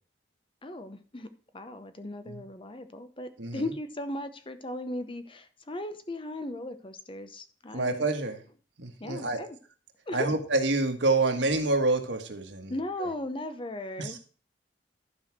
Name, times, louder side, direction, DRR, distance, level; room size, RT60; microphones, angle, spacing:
voice 1, 0.6-1.3 1.5-8.0 9.0-9.6 10.1-10.3 12.7-14.2, left 1 dB, 30° left, 10 dB, 0.9 m, -37 dB
voice 2, 7.7-8.4 8.8-9.4 10.1-12.7 13.0-13.1 14.0-14.2, right 2 dB, 85° right, 5 dB, 1.6 m, -27 dB
12.0 x 4.8 x 6.0 m, 0.39 s
head